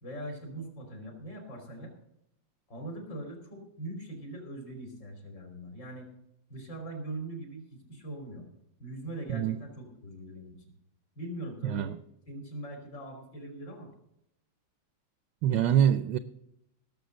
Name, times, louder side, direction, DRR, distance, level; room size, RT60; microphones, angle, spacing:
voice 1, 0.0-1.9 2.7-6.1 6.5-8.5 8.8-10.6 11.2-11.9 12.3-13.9, right 1 dB, 55° left, 3 dB, 3.8 m, -41 dB
voice 2, 11.6-12.0 15.4-16.2, right 9 dB, 70° right, 13 dB, 1.2 m, -25 dB
18.0 x 7.0 x 6.4 m, 0.80 s
omnidirectional pair, 2.3 m